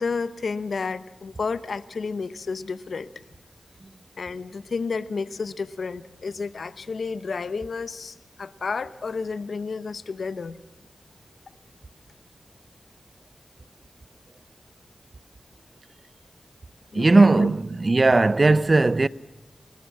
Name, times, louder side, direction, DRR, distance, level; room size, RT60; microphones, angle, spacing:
voice 1, 0.0-3.1 4.2-10.6 16.9-17.5, left 4 dB, 75° left, 0.8 m, -31 dB
voice 2, 16.9-19.1, right 3 dB, 45° right, 0.6 m, -18 dB
29.5 x 13.5 x 7.3 m
cardioid pair, 40°, 0 cm